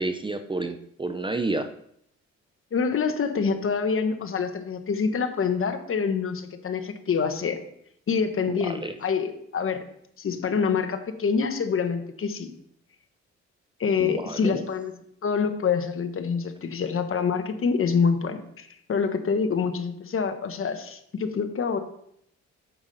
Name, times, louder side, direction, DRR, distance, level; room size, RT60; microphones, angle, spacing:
voice 1, 0.0-1.7 8.6-8.9 14.0-14.6, right 2 dB, 15° right, 8 dB, 0.6 m, -30 dB
voice 2, 2.7-7.6 8.1-9.8 10.2-12.5 13.8-14.9 15.2-21.8, left 5 dB, 45° left, 8 dB, 1.2 m, -26 dB
8.9 x 7.1 x 4.1 m, 0.71 s
cardioid pair, 90°, 30 cm